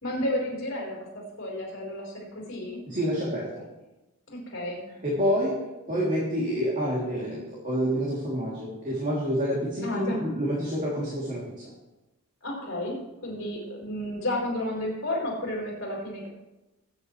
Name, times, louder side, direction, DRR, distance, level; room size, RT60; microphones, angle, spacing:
voice 1, 0.0-2.8 4.3-4.8 9.8-10.2 12.4-16.3, left 1 dB, 60° left, -3 dB, 4.7 m, -32 dB
voice 2, 2.9-3.6 5.0-5.5 5.9-11.7, equal, 35° right, -6 dB, 3.2 m, -28 dB
21.0 x 9.5 x 3.3 m, 1.0 s
head